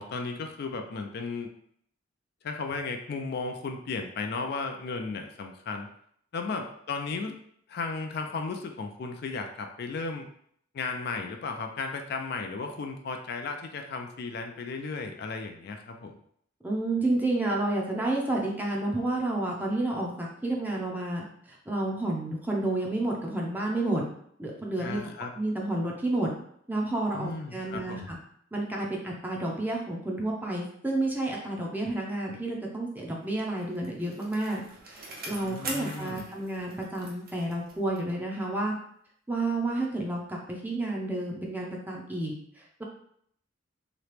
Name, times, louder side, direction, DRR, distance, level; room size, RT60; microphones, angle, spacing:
voice 1, 0.0-1.5 2.4-5.9 6.3-7.4 7.7-10.3 10.7-16.2 24.8-25.3 27.1-28.1 35.3-36.3, left 4 dB, 55° left, 4 dB, 0.4 m, -35 dB
voice 2, 16.6-24.0 24.4-25.0 25.3-26.3 26.7-28.2 28.5-38.7 39.3-42.3, right 2 dB, 10° right, -2 dB, 0.6 m, -30 dB
Bicycle, 33.3-38.2 38.6-38.7, right 2 dB, 50° right, 0.7 m, -43 dB
3.0 x 2.9 x 3.2 m, 0.67 s
head